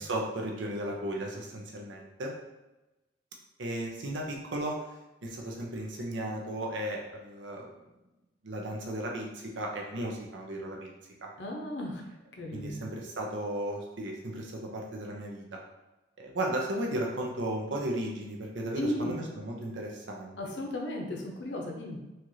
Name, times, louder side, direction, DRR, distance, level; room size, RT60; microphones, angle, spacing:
voice 1, 0.0-2.3 3.6-4.7 5.2-7.7 8.4-10.9 11.2-11.3 12.5-15.6 16.2-20.4, right 1 dB, 85° right, -1 dB, 0.7 m, -35 dB
voice 2, 11.4-12.0 12.4-12.8 18.7-19.2 20.4-22.0, left 1 dB, 75° left, 1 dB, 0.7 m, -35 dB
4.4 x 2.5 x 3.1 m, 1.0 s
head